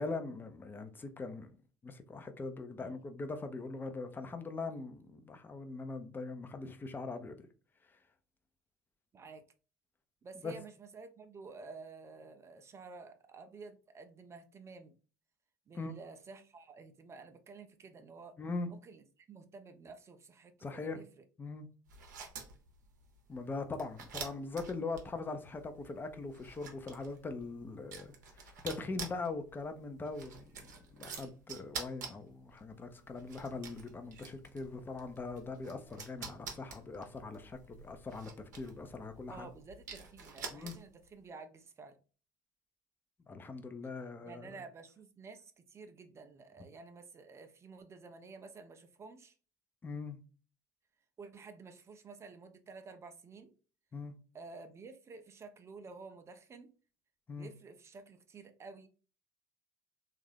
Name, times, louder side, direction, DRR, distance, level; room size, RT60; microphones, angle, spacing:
voice 1, 0.0-1.5 1.8-7.5 10.4-10.5 15.7-15.9 18.4-18.7 20.6-21.0 21.4-21.7 23.3-28.1 28.4-30.5 30.9-39.5 40.5-40.7 43.3-44.5 49.8-50.2 53.9-54.1 57.3-57.5, left 3 dB, 20° left, 0.6 m, -41 dB
voice 2, 10.2-14.9 15.7-18.4 18.7-21.2 39.3-42.0 44.2-49.3 51.2-53.5 54.3-56.7 57.4-58.9, right 4 dB, 30° right, 0.5 m, -51 dB
sound 1, 21.9-41.1, right 5 dB, 70° right, 0.7 m, -49 dB
3.5 x 2.4 x 3.3 m
figure-of-eight pair, 60°, 10 cm